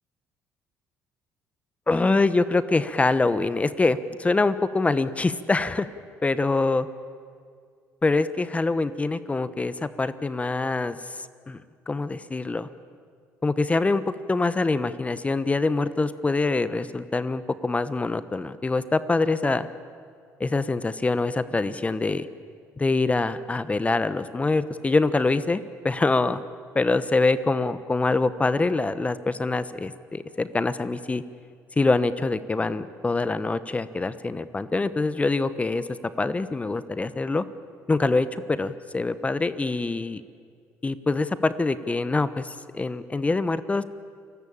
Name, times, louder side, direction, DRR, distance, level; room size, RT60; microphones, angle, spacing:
voice 1, 1.9-5.9 6.2-6.9 8.0-11.0 11.5-11.6 11.9-12.7 13.4-19.7 20.4-22.3 22.8-26.4 26.7-31.2 31.8-35.8 36.2-37.4 37.9-40.2 40.8-43.8, left 3 dB, 20° left, 14 dB, 1.0 m, -24 dB
29.5 x 18.0 x 8.8 m, 2.2 s
supercardioid pair, 80°, 6 cm